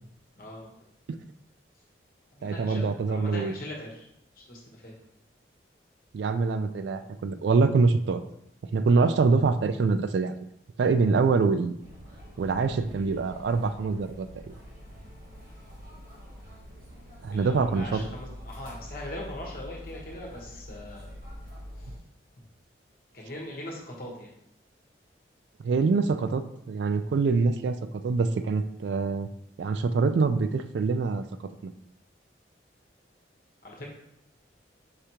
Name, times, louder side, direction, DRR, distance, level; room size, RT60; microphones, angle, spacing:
voice 1, 0.4-0.7 2.3-4.1 4.3-5.0 17.3-21.1 21.8-21.9 23.1-24.3 33.6-33.9, left 1 dB, 50° left, -2 dB, 1.1 m, -40 dB
voice 2, 2.4-3.6 6.1-8.2 8.7-10.4 10.8-11.8 12.4-14.5 17.2-18.0 25.6-27.8 28.0-29.3 29.6-31.7, right 4 dB, 70° right, 10 dB, 0.3 m, -25 dB
sound 1, 11.8-22.0, equal, 50° right, 1.2 m, -45 dB
5.0 x 3.4 x 2.8 m, 0.75 s
head